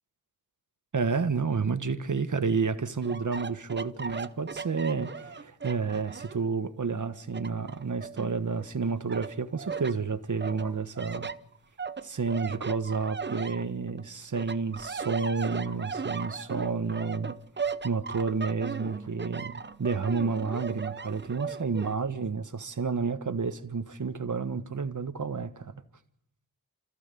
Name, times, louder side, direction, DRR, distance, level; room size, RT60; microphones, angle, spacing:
voice 1, 0.9-11.3 12.0-17.4 17.8-25.7, right 5 dB, 55° right, 1.5 m, -30 dB
sound 1, 3.0-6.5 6.9-8.7 9.1-10.0 10.4-14.0 14.4-22.0, right 5 dB, 30° right, 0.7 m, -37 dB
28.0 x 15.0 x 6.9 m
wide cardioid pair, 70°, 37 cm